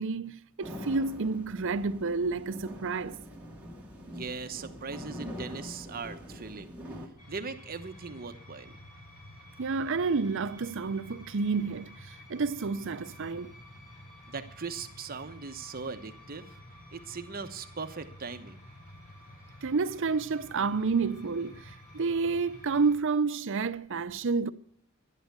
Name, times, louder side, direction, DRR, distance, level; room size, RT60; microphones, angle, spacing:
voice 1, 0.0-3.2 9.6-13.5 19.6-24.5, right 4 dB, 60° right, 0.6 m, -30 dB
sound 1, 0.6-7.1, equal, 5° right, 2.3 m, -44 dB
voice 2, 4.1-8.7 14.3-16.6 16.9-18.6, right 4 dB, 45° right, 1.0 m, -40 dB
sound 2, 7.2-22.9, equal, 40° left, 4.1 m, -50 dB
11.5 x 11.0 x 6.7 m
head